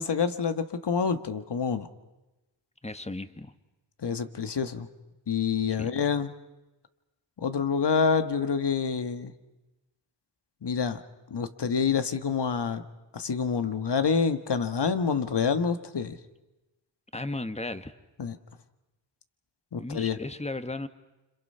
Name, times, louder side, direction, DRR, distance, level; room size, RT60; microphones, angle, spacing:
voice 1, 0.0-1.9 4.0-4.9 5.3-6.3 7.4-9.3 10.6-11.0 11.3-12.8 13.1-16.2 18.2-18.4 19.7-20.2, left 6 dB, 60° left, 9 dB, 1.7 m, -27 dB
voice 2, 2.8-3.5 5.7-5.9 17.1-17.9 19.8-20.9, left 2 dB, 15° left, 10 dB, 1.6 m, -35 dB
29.5 x 27.0 x 5.7 m, 1.1 s
cardioid pair, 50°, 45 cm